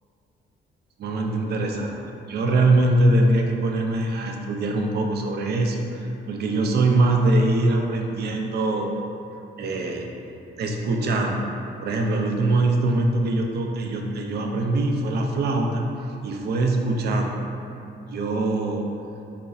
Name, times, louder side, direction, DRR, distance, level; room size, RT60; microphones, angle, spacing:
voice 1, 1.0-2.0 2.3-8.9 9.6-10.1 10.6-11.5 11.8-15.9 16.2-17.4 18.1-18.9, right 2 dB, 55° right, 2 dB, 0.4 m, -22 dB
3.7 x 2.0 x 2.6 m, 2.7 s
cardioid pair, 90°, 20 cm